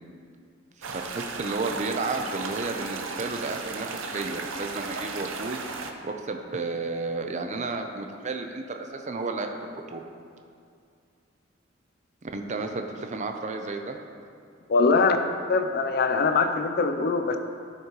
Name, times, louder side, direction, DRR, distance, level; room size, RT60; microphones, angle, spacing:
voice 1, 0.8-5.7 6.0-10.1 12.3-14.0, right 3 dB, 35° right, 4 dB, 0.6 m, -32 dB
sound 1, 0.8-5.9, right 4 dB, 75° right, 0.6 m, -35 dB
voice 2, 14.7-15.2 15.5-17.4, left 4 dB, 50° left, 7 dB, 0.5 m, -22 dB
12.5 x 5.8 x 3.0 m, 2.4 s
head